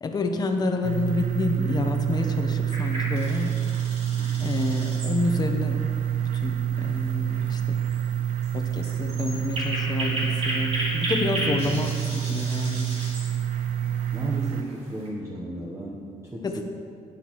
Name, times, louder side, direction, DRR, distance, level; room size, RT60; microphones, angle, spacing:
voice 1, 0.0-3.6 4.4-5.8 6.2-7.8 8.5-12.9 16.4-16.6, left 3 dB, 30° left, 5 dB, 0.8 m, -29 dB
sound 1, 0.8-14.6, right 10 dB, 80° right, 0.5 m, -27 dB
sound 2, 2.7-15.1, right 1 dB, 50° right, 2.7 m, -35 dB
voice 2, 4.2-4.6 11.3-11.8 14.1-16.6, right 1 dB, 20° right, -3 dB, 0.8 m, -35 dB
12.5 x 9.4 x 3.0 m, 2.3 s
cardioid pair, 150°, 14 cm